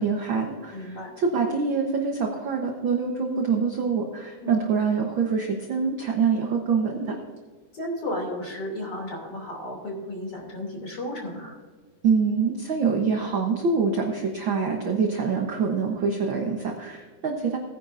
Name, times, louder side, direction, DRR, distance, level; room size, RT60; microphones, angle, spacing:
voice 1, 0.0-7.2 12.0-17.6, right 5 dB, 65° right, 1 dB, 1.2 m, -25 dB
voice 2, 0.7-1.1 4.4-4.7 7.7-11.6, left 1 dB, 35° left, 0 dB, 3.2 m, -33 dB
19.0 x 9.9 x 2.6 m, 1.5 s
omnidirectional pair, 3.7 m